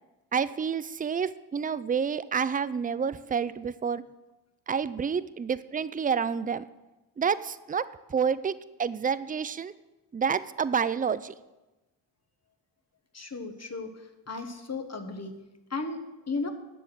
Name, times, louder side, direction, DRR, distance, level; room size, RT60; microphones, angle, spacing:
voice 1, 0.3-4.0 4.7-6.6 7.2-8.5 8.8-9.7 10.1-11.3, right 6 dB, 20° right, 16 dB, 0.4 m, -29 dB
voice 2, 13.1-13.9 14.3-15.3 15.7-16.0 16.3-16.5, left 3 dB, 30° left, 6 dB, 1.5 m, -34 dB
10.5 x 7.1 x 6.2 m, 1.1 s
cardioid pair, 65°, 49 cm